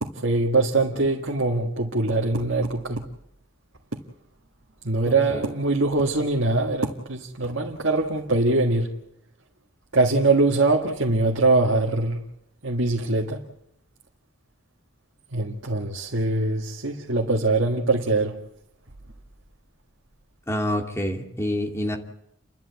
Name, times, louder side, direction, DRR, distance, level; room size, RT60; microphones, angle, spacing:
voice 1, 0.0-3.0 4.8-8.9 9.9-12.2 12.6-13.4 15.3-18.4, right 2 dB, 65° right, 1.9 m, -23 dB
voice 2, 20.5-22.0, left 1 dB, 15° left, 2.7 m, -27 dB
30.0 x 13.0 x 8.3 m
head